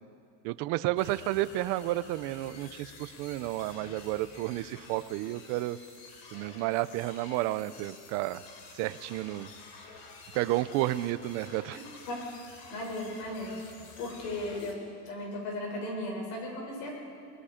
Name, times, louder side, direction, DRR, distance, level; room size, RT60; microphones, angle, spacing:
voice 1, 0.4-5.8 6.3-8.4 8.8-9.5 10.3-11.8, right 16 dB, 35° right, 14 dB, 0.4 m, -31 dB
sound 1, 1.0-14.7, left 4 dB, 60° left, 3.2 m, -50 dB
voice 2, 12.7-13.6 14.0-14.8 15.0-16.9, left 1 dB, 80° left, 0 dB, 6.8 m, -36 dB
29.0 x 20.0 x 5.0 m, 2.5 s
cardioid pair, 170°, 49 cm